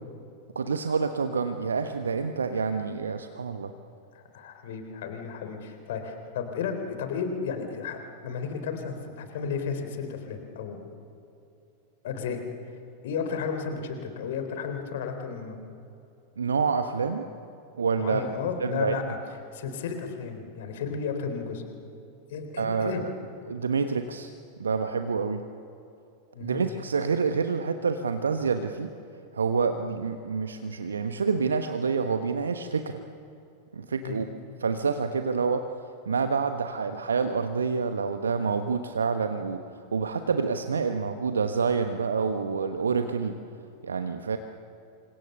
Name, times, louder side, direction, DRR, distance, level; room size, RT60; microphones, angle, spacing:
voice 1, 0.5-3.7 16.4-17.2 17.8-18.2 18.6-19.0 22.6-23.1 23.5-24.3 24.6-25.5 26.4-28.9 29.3-33.0 33.7-34.3 34.6-35.7 36.1-39.6 39.9-43.4 43.8-44.4, right 5 dB, 70° right, 8 dB, 1.1 m, -27 dB
voice 2, 4.1-10.8 12.0-12.4 13.0-15.5 18.0-19.0 19.5-21.6 22.3-23.0 26.3-26.6 34.0-34.2, left 6 dB, 55° left, 6 dB, 3.8 m, -33 dB
30.0 x 26.0 x 6.9 m, 2.8 s
figure-of-eight pair, 90°, 0 cm